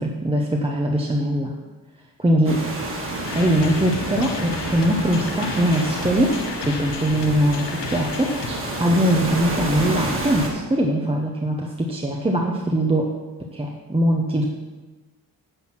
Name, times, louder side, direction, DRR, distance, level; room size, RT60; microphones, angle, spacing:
voice 1, 0.0-1.5 2.2-2.7 3.3-13.1 13.5-14.5, right 1 dB, 15° right, 0 dB, 0.7 m, -22 dB
sound 1, 2.4-10.5, right 1 dB, 30° right, 1.9 m, -29 dB
sound 2, 3.2-8.5, left 5 dB, 85° left, 1.1 m, -34 dB
10.0 x 6.0 x 6.0 m, 1.2 s
wide cardioid pair, 155°, 41 cm